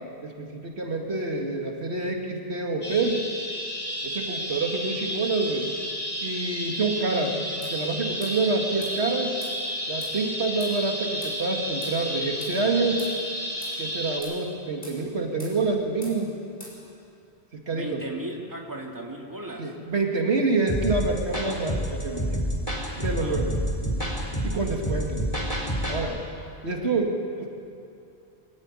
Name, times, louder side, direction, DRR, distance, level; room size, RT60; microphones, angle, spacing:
voice 1, 0.2-3.2 4.0-5.7 6.2-9.4 9.9-13.1 13.8-16.3 17.5-18.0 19.6-22.4 23.0-23.6 24.4-25.3 25.9-26.2 26.6-27.5, right 3 dB, 75° right, 1 dB, 2.5 m, -27 dB
sound 1, 2.8-14.2, equal, 85° left, 6.8 m, -32 dB
sound 2, 7.6-7.8 8.2-8.4 8.8-9.0 9.4-9.6 10.0-10.2 10.6-10.8 11.2-11.4 11.8-12.0 12.4-12.6 13.0-13.2 13.6-13.8 14.2-14.4 14.8-15.0 15.4-15.6 16.0-16.2 16.6-16.8, left 1 dB, 55° left, 6.5 m, -44 dB
voice 2, 17.7-19.7 23.0-23.4, right 1 dB, 20° right, 0 dB, 2.2 m, -36 dB
sound 3, 20.7-26.0, equal, 30° left, 3.9 m, -28 dB
23.0 x 16.5 x 9.8 m, 2.6 s
omnidirectional pair, 1.1 m